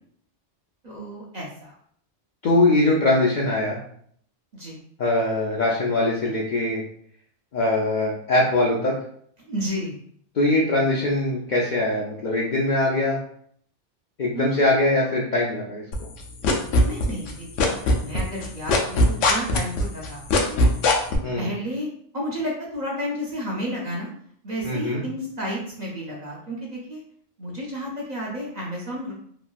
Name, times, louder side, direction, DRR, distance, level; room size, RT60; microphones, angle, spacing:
voice 1, 0.8-1.7 4.5-4.8 9.5-10.0 14.3-15.0 16.8-20.6 21.4-21.9 22.1-24.1 24.4-27.0 27.4-29.1, equal, 45° right, -3 dB, 0.6 m, -31 dB
voice 2, 2.4-3.8 5.0-6.8 7.5-8.9 10.3-13.2 14.2-15.8 21.2-21.5 24.6-25.0, left 2 dB, 60° left, -4 dB, 0.5 m, -22 dB
sound 1, 15.9-17.3 17.6-21.2, left 2 dB, 90° left, 0.9 m, -19 dB
2.9 x 2.5 x 2.2 m, 0.63 s
omnidirectional pair, 1.2 m